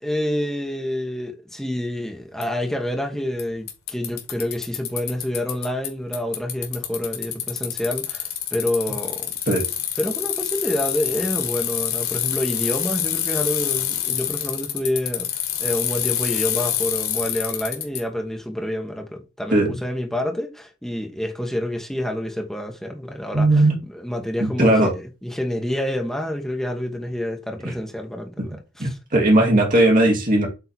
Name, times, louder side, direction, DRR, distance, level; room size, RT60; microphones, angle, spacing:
voice 1, 0.0-9.3 10.0-15.3 15.6-29.0, left 1 dB, ahead, 1.3 m, -28 dB
Bicycle, 2.4-2.5 3.4-3.5 3.7-5.9 6.1-18.0, left 11 dB, 85° left, 2.2 m, -26 dB
voice 2, 23.3-23.8 24.4-24.9 27.6-27.7 28.4-28.5 28.8-30.5, right 1 dB, 40° right, 2.5 m, -18 dB
8.1 x 3.9 x 4.4 m
head